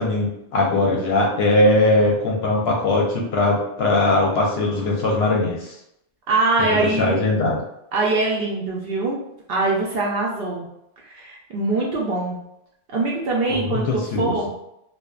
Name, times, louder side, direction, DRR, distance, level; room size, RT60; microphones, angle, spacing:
voice 1, 0.0-5.7 6.7-7.6 13.5-14.4, left 2 dB, 65° left, -1 dB, 0.7 m, -20 dB
voice 2, 6.3-7.2 7.9-9.2 9.5-10.7 11.0-12.4 12.9-14.6, right 3 dB, 65° right, -3 dB, 0.6 m, -23 dB
2.6 x 2.1 x 2.3 m, 0.81 s
omnidirectional pair, 1.3 m